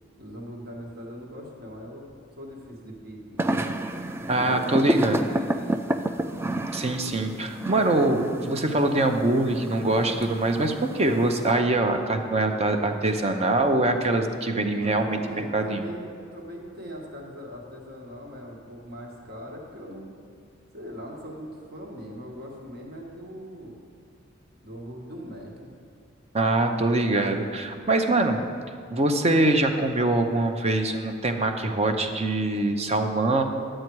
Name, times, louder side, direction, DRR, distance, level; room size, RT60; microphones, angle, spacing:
voice 1, 0.2-3.5 4.3-6.0 14.7-16.0 16.3-20.1 20.7-23.8 24.6-25.7, equal, 55° right, 0 dB, 1.6 m, -40 dB
sound 1, 3.4-11.5, right 1 dB, 10° right, 0.3 m, -30 dB
voice 2, 4.3-5.2 6.7-15.8 26.3-28.4 28.9-33.4, right 2 dB, 30° right, 6 dB, 0.7 m, -23 dB
11.0 x 7.7 x 4.6 m, 2.4 s
head